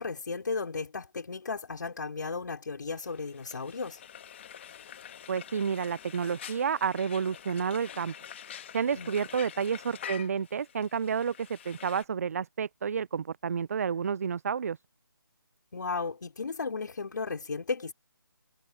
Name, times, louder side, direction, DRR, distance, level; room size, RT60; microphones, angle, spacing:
voice 1, 0.0-4.0 8.9-9.1 15.7-17.9, left 4 dB, 60° left, 4.8 m, -35 dB
Frying (food), 2.9-12.0, left 9 dB, 30° left, 1.7 m, -46 dB
voice 2, 5.3-8.1 8.7-14.8, right 6 dB, 45° right, 0.7 m, -30 dB
figure-of-eight pair, 150°, 12 cm